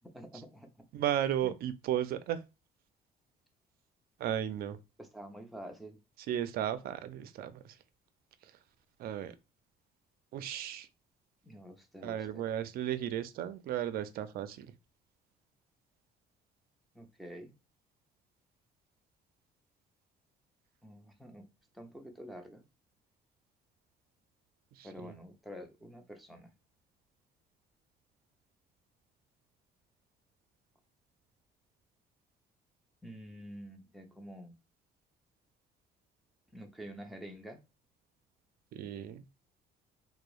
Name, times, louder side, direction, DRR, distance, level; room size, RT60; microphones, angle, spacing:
voice 1, 0.1-0.7 1.4-1.6 5.0-6.0 11.4-12.4 16.9-17.6 20.8-21.5 21.7-22.6 24.8-26.5 33.0-34.5 36.5-37.6, equal, ahead, 0.5 m, -48 dB
voice 2, 0.9-2.4 4.2-4.8 6.3-7.7 9.0-9.3 10.3-10.9 12.0-14.7 24.8-25.1 38.7-39.3, right 11 dB, 65° right, 0.4 m, -34 dB
2.8 x 2.0 x 2.3 m
cardioid pair, 110°, 17 cm